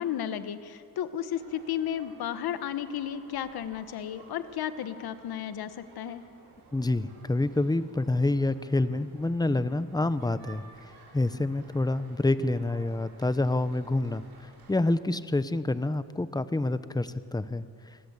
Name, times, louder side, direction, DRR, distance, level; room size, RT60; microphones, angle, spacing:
voice 1, 0.0-6.2, left 10 dB, 70° left, 11 dB, 1.6 m, -33 dB
sound 1, 1.3-14.8, right 3 dB, 75° right, 7.9 m, -55 dB
voice 2, 6.7-10.6 11.1-14.2 14.7-17.6, left 2 dB, 10° left, 13 dB, 1.1 m, -27 dB
27.5 x 20.5 x 8.4 m, 2.3 s
cardioid pair, 100°, 38 cm